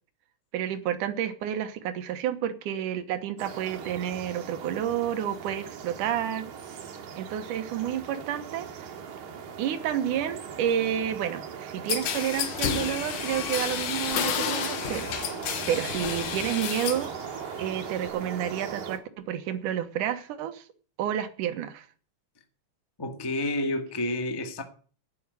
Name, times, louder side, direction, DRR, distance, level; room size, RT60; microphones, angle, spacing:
voice 1, 0.5-6.5 7.2-8.9 9.6-15.1 15.7-17.1 17.6-20.7 21.0-21.9, right 10 dB, 85° right, 2.7 m, -30 dB
sound 1, 3.4-19.0, right 7 dB, 70° right, 3.3 m, -39 dB
sound 2, 11.9-17.1 17.5-18.1, left 9 dB, 90° left, 2.8 m, -31 dB
voice 2, 23.0-24.6, left 1 dB, 15° left, 1.0 m, -29 dB
9.4 x 8.5 x 9.6 m
omnidirectional pair, 3.6 m